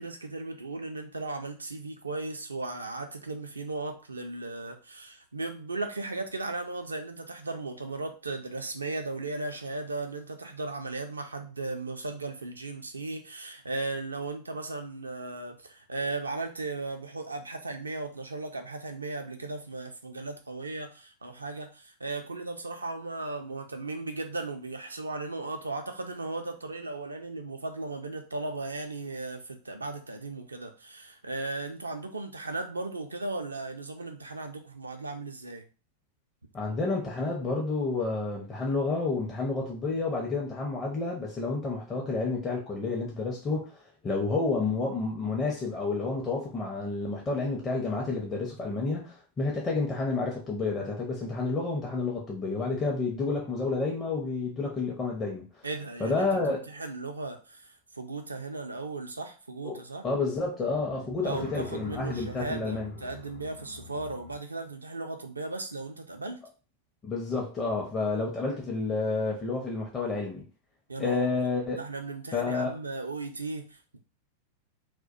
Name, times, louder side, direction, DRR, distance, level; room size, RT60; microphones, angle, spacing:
voice 1, 0.0-35.6 55.6-60.0 61.2-66.4 70.9-71.3 71.8-74.0, right 2 dB, 80° right, 0.4 m, -36 dB
voice 2, 36.5-55.7 56.0-56.6 59.6-59.8 60.0-62.9 67.0-70.4 71.0-71.8 72.3-72.7, left 3 dB, 20° left, 0.5 m, -30 dB
sound 1, 60.7-64.4, left 3 dB, 80° left, 0.9 m, -46 dB
2.2 x 2.1 x 2.6 m
figure-of-eight pair, 90°, 0 cm